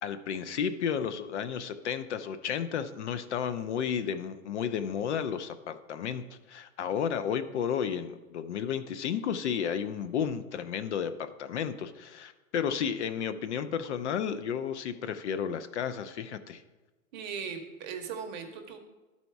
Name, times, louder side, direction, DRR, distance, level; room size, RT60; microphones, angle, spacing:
voice 1, 0.0-16.6, left 7 dB, 55° left, 11 dB, 0.6 m, -32 dB
voice 2, 17.1-18.8, right 6 dB, 30° right, 5 dB, 0.9 m, -38 dB
12.0 x 4.2 x 4.6 m, 1.2 s
hypercardioid pair, 160°, 42 cm